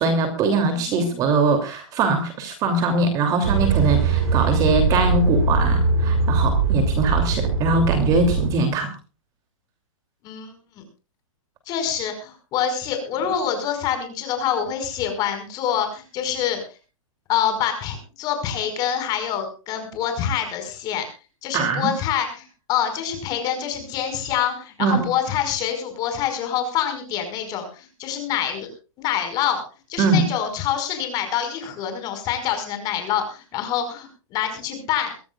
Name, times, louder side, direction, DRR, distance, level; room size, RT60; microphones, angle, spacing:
voice 1, 0.0-8.9 21.5-21.9 24.8-25.1 30.0-30.3, right 3 dB, 20° right, 6 dB, 2.9 m, -22 dB
voice 2, 0.7-1.2 10.2-10.8 11.7-16.6 17.3-21.0 21.4-28.7 29.0-29.6 29.9-35.1, left 9 dB, 20° left, 7 dB, 5.3 m, -26 dB
sound 1, 3.4-8.5, right 4 dB, 55° right, 7.3 m, -21 dB
23.0 x 16.0 x 2.4 m, 0.33 s
hypercardioid pair, 165°, 17 cm